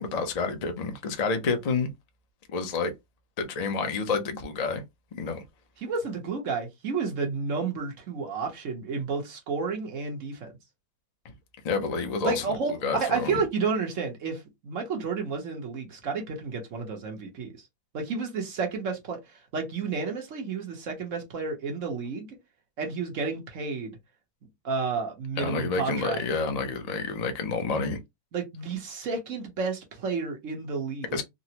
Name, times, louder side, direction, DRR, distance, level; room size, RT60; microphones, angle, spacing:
voice 1, 0.0-1.9 2.5-2.9 3.4-4.8 5.1-5.4 11.2-11.3 11.6-12.4 12.8-13.4 25.4-28.0 31.1-31.2, left 4 dB, 80° left, 0.3 m, -29 dB
voice 2, 5.8-10.5 12.2-17.5 17.9-22.4 22.8-24.0 24.6-26.2 28.3-31.2, right 4 dB, 55° right, 1.2 m, -31 dB
3.8 x 2.1 x 2.8 m
omnidirectional pair, 1.7 m